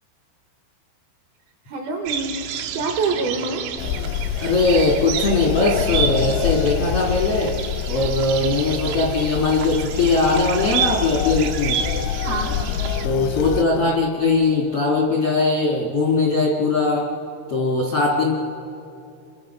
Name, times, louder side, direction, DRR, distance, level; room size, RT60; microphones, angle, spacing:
voice 1, 1.7-2.4 2.7-3.7 12.2-12.6, right 4 dB, 70° right, 3 dB, 2.4 m, -25 dB
sound 1, 2.1-13.1, right 8 dB, 85° right, 3.6 m, -30 dB
sound 2, 3.8-13.6, left 9 dB, 90° left, 3.7 m, -26 dB
voice 2, 4.4-7.5 7.9-11.8 13.0-17.0 17.5-18.3, left 3 dB, 75° left, -1 dB, 1.3 m, -20 dB
29.5 x 24.5 x 5.6 m, 2.6 s
omnidirectional pair, 5.9 m